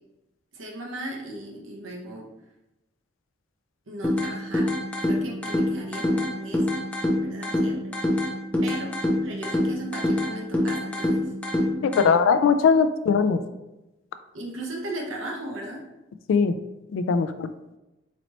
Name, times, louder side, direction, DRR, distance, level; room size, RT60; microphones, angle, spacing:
voice 1, 0.5-2.3 3.9-4.7 5.0-6.8 7.2-8.2 8.6-9.0 9.2-11.3 14.3-15.8, right 1 dB, 85° right, -1 dB, 0.9 m, -37 dB
sound 1, 4.0-12.0, left 1 dB, 5° left, 0.5 m, -26 dB
voice 2, 11.8-13.4 16.3-16.6 16.9-17.5, left 5 dB, 80° left, 10 dB, 0.3 m, -20 dB
4.1 x 3.1 x 2.9 m, 0.97 s
head